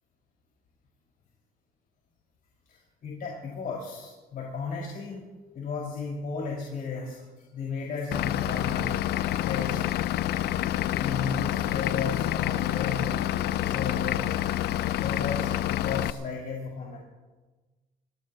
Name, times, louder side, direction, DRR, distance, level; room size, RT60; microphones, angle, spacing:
voice 1, 2.7-5.2 5.5-8.9 9.2-9.8 10.9-13.2 13.6-14.4 14.7-17.0, left 5 dB, 55° left, -3 dB, 5.1 m, -34 dB
Vehicle / Engine, 8.1-16.1, left 13 dB, 75° left, 0.6 m, -28 dB
27.5 x 18.0 x 2.9 m, 1.2 s
cardioid pair, 110°, 17 cm